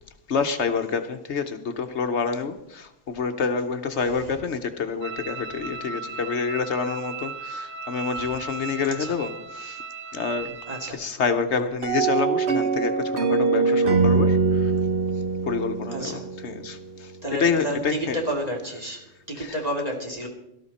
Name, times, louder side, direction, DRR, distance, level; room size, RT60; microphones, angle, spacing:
voice 1, 0.3-9.8 10.1-10.6 10.9-14.7 15.4-17.1 17.4-18.2 19.4-19.5, left 5 dB, 65° left, 8 dB, 1.1 m, -27 dB
sound 1, 5.0-10.9, right 4 dB, 80° right, 1.3 m, -36 dB
voice 2, 8.8-9.1 10.7-11.0 15.9-16.3 17.2-20.3, right 1 dB, 30° right, 0 dB, 2.8 m, -31 dB
sound 2, 11.8-17.0, right 4 dB, 60° right, 1.5 m, -23 dB
18.0 x 13.0 x 4.2 m, 0.86 s
omnidirectional pair, 1.3 m